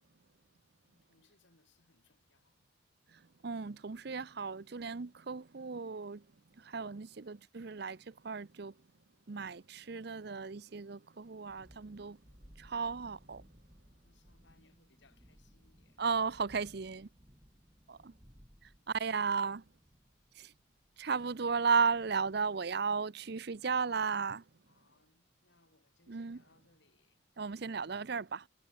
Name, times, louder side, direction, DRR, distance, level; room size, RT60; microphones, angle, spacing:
voice 1, 0.8-2.7 14.0-16.0 20.9-21.4 24.6-27.2, left 3 dB, 60° left, 3.9 m, -70 dB
voice 2, 3.1-6.2 6.6-8.7 9.3-12.2 12.6-13.4 16.0-17.1 17.9-18.1 18.6-19.6 20.4-20.5 21.0-24.4 26.1-26.4 27.4-28.5, right 5 dB, 55° right, 0.6 m, -35 dB
Thunderstorm, 11.3-22.8, equal, 20° right, 7.0 m, -62 dB
head